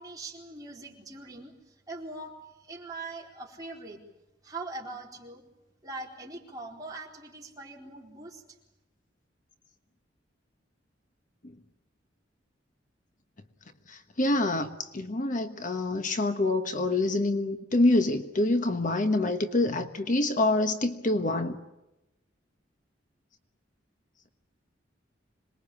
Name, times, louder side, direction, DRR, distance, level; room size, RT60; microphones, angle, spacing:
voice 1, 0.0-4.0 4.4-5.4 5.8-8.6, right 2 dB, 20° right, 4.2 m, -42 dB
voice 2, 13.9-21.6, left 2 dB, 45° left, 1.2 m, -26 dB
26.5 x 21.0 x 8.6 m
head